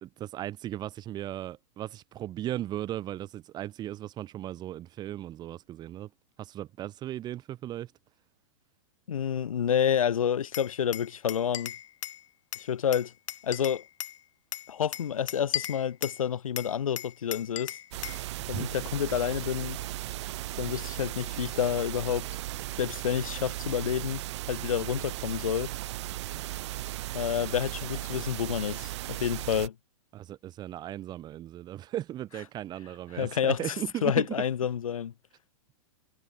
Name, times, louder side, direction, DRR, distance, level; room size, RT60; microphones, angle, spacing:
voice 1, 0.0-6.1 6.4-7.9 18.5-18.7 30.1-34.3, right 13 dB, 25° right, 1.4 m, -37 dB
voice 2, 9.1-11.7 12.6-13.1 13.4-13.8 14.7-17.8 18.5-19.8 20.6-22.3 22.8-24.2 24.5-25.7 27.1-29.7 33.1-33.7 34.0-35.1, left 8 dB, 90° left, 1.4 m, -29 dB
Glass, 10.5-12.2 12.5-14.2 14.5-16.2 16.6-18.2, left 12 dB, 65° left, 5.8 m, -37 dB
sound 1, 17.9-29.7, right 15 dB, 60° right, 3.4 m, -36 dB
hypercardioid pair, 140°, 17 cm